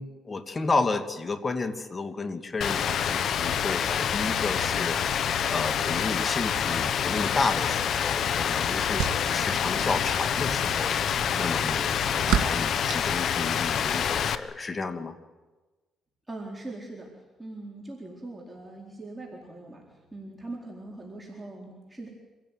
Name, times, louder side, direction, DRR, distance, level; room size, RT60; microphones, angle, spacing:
voice 1, 0.0-15.2, left 3 dB, 30° left, 9 dB, 2.3 m, -32 dB
Rain, 2.6-14.4, left 8 dB, 65° left, 1.2 m, -27 dB
sound 1, 7.9-14.0, right 10 dB, 75° right, 2.5 m, -35 dB
voice 2, 16.3-17.1 17.4-19.8 20.1-22.1, right 2 dB, 10° right, -2 dB, 4.3 m, -41 dB
26.5 x 16.5 x 9.4 m, 1.2 s
cardioid pair, 90°, 0 cm